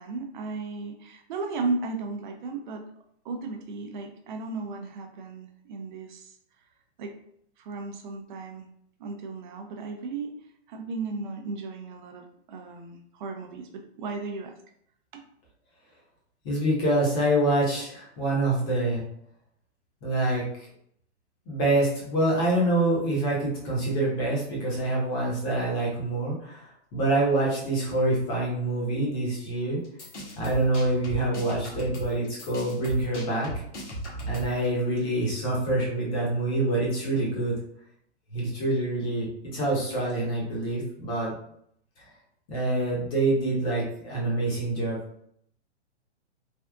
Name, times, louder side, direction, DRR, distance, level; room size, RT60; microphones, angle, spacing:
voice 1, 0.0-2.8 3.2-6.4 7.0-7.1 7.6-8.7 9.0-10.4 10.7-14.6 15.1-15.2, right 3 dB, 45° right, 4 dB, 0.5 m, -35 dB
voice 2, 16.4-19.0 20.0-20.4 21.5-29.8 30.4-33.5 34.2-37.5 38.3-41.3 42.5-45.0, right 1 dB, 30° left, -4 dB, 1.2 m, -26 dB
sound 1, 29.8-34.7, equal, 85° left, 1.2 m, -36 dB
3.4 x 2.5 x 2.3 m, 0.69 s
hypercardioid pair, 140°, 35 cm